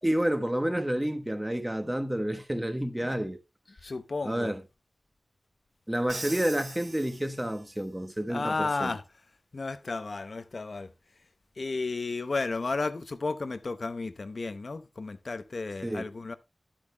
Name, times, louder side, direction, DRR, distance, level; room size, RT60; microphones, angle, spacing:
voice 1, 0.0-3.4 4.2-4.6 5.9-9.0 15.8-16.0, right 1 dB, 15° right, 1.2 m, -29 dB
voice 2, 3.8-4.5 8.3-9.0 9.5-10.9 11.6-16.3, left 3 dB, 65° left, 0.8 m, -33 dB
Crash cymbal, 6.1-7.8, right 2 dB, 60° right, 1.9 m, -41 dB
12.0 x 8.7 x 2.3 m
wide cardioid pair, 60°, 0 cm